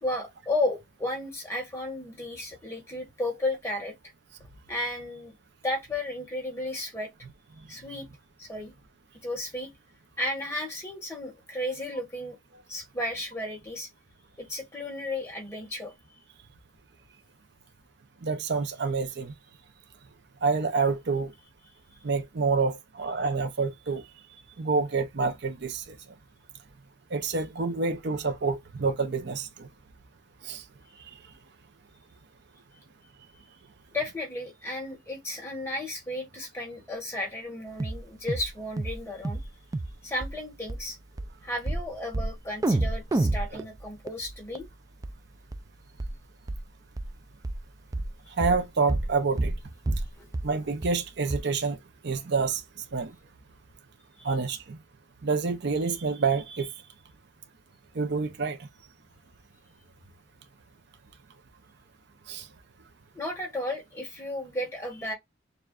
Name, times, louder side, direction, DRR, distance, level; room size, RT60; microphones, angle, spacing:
voice 1, 0.0-4.0 4.7-5.3 5.6-7.1 7.7-8.1 8.4-8.7 9.1-9.7 10.2-12.4 12.7-13.9 14.4-15.9 33.9-39.4 40.0-41.0 41.4-44.7 50.2-50.3 54.2-54.3 63.1-65.1, left 1 dB, 15° left, 1.8 m, -33 dB
voice 2, 18.2-19.3 20.4-21.3 22.0-24.0 24.6-26.0 27.1-29.7 30.4-30.6 43.5-43.6 48.4-49.5 50.4-51.8 52.0-52.6 52.9-53.1 54.2-54.8 55.2-56.7 57.9-58.6 62.3-62.5, right 4 dB, 60° right, 0.7 m, -28 dB
sound 1, 37.8-38.0 38.3-38.5 38.8-39.0 39.2-39.5 39.7-39.9 40.2-40.3 40.7-40.8 41.2-41.3 41.7-41.9 42.1-42.3 42.6-44.7 45.0-45.1 45.5-45.6 46.0-46.1 46.5-46.6 47.0-47.1 47.4-47.6 47.9-48.1 48.4-48.6 48.9-49.1 49.4-49.6 49.9-50.1 50.3-50.5 50.8-50.9 51.3-51.4, right 2 dB, 20° right, 0.3 m, -28 dB
6.7 x 2.3 x 2.4 m
head